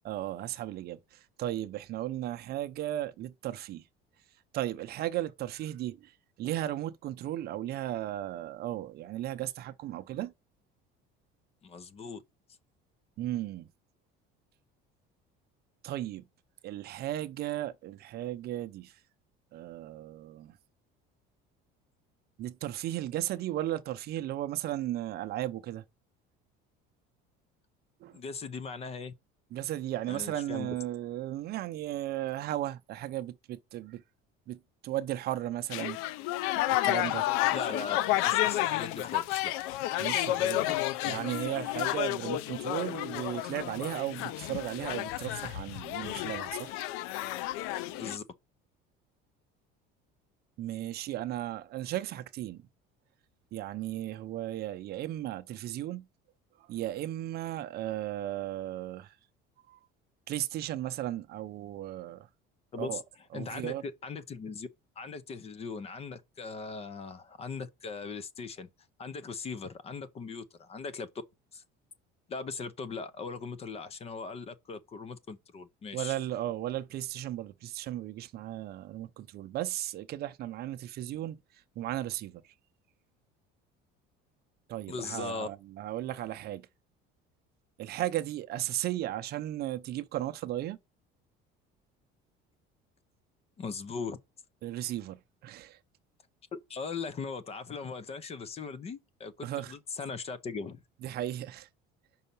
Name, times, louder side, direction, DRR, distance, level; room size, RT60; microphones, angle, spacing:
voice 1, 0.0-3.8 4.5-6.1 6.4-10.3 13.2-13.7 15.8-16.2 16.6-19.0 19.5-20.6 22.4-25.8 28.0-28.2 29.5-34.0 34.5-36.0 36.6-37.3 40.0-40.7 41.0-46.8 50.6-52.6 53.5-56.1 56.6-59.1 59.7-59.8 60.3-62.3 62.8-63.0 63.3-63.8 75.9-81.4 81.8-82.4 84.7-86.7 87.8-90.8 94.6-95.8 99.4-99.7 101.0-101.7, right 13 dB, 50° right, 0.7 m, -35 dB
voice 2, 11.6-12.2 28.1-29.1 30.1-30.7 37.5-39.5 47.9-48.2 62.7-63.0 63.3-64.7 65.0-68.7 69.0-71.1 71.5-71.6 72.3-76.2 84.9-85.5 93.6-94.2 96.7-100.8, left 4 dB, 30° left, 0.7 m, -39 dB
sound 1, 35.7-48.2, left 15 dB, 85° left, 0.5 m, -31 dB
5.6 x 4.1 x 5.4 m
cardioid pair, 155°, 21 cm